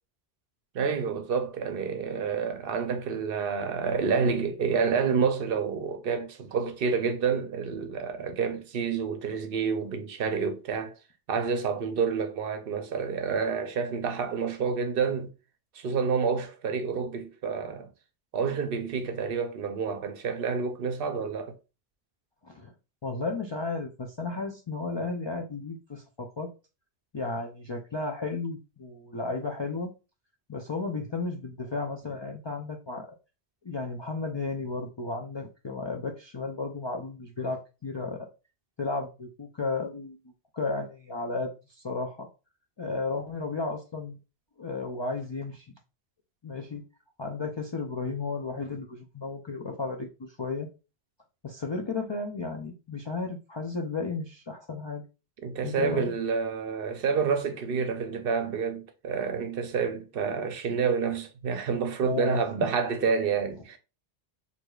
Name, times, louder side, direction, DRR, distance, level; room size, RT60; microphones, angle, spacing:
voice 1, 0.7-10.9 11.3-15.3 15.7-17.9 18.3-21.6 55.4-63.8, right 5 dB, 65° right, 0.7 m, -28 dB
voice 2, 23.0-26.5 27.1-29.9 30.5-33.1 33.6-38.3 38.8-40.2 40.5-42.3 42.8-44.2 44.6-45.6 46.4-46.8 47.2-50.7 51.4-55.0 55.6-56.1 62.0-62.4, left 3 dB, 50° left, 0.3 m, -33 dB
4.7 x 2.6 x 2.3 m
omnidirectional pair, 1.1 m